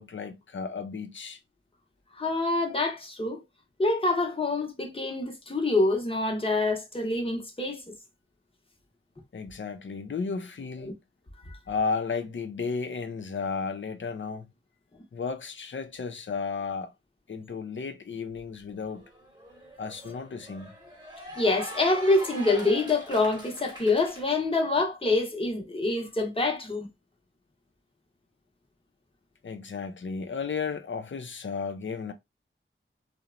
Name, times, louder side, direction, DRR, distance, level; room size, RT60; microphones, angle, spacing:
voice 1, 0.0-1.4 9.3-10.9 11.7-14.5 15.1-16.9 17.3-19.0 19.8-20.9 29.4-32.1, left 5 dB, 65° left, 0.5 m, -33 dB
voice 2, 2.2-3.4 3.8-7.8 10.8-10.9 11.5-11.6 21.4-26.9, left 2 dB, 25° left, 0.8 m, -26 dB
Cheering / Applause, 18.4-18.5 18.8-24.2, equal, 20° right, 1.0 m, -43 dB
2.8 x 2.1 x 2.4 m
wide cardioid pair, 55°, 21 cm